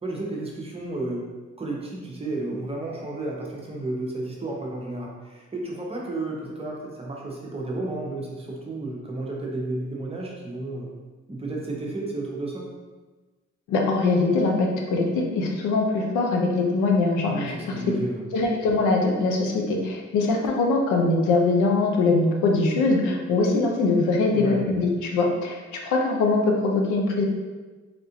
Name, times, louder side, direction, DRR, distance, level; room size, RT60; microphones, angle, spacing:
voice 1, 0.0-10.9 11.3-12.8 17.3-18.2 24.3-24.7, right 2 dB, 20° right, -2 dB, 0.7 m, -32 dB
voice 2, 13.7-17.6 18.3-27.2, left 3 dB, 90° left, 1 dB, 0.6 m, -22 dB
3.4 x 2.4 x 2.8 m, 1.3 s
cardioid pair, 90°, 30 cm